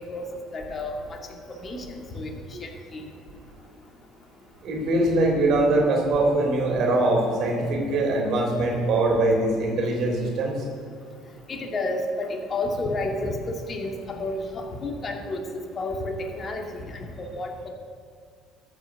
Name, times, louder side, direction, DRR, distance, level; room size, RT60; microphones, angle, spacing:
voice 1, 0.5-1.2 1.6-2.3 2.6-3.0 11.5-17.7, left 2 dB, 40° left, 2 dB, 2.1 m, -31 dB
voice 2, 4.6-10.5, right 2 dB, 60° right, 0 dB, 3.3 m, -22 dB
13.5 x 6.1 x 6.5 m, 2.2 s
hypercardioid pair, 65°, 0 cm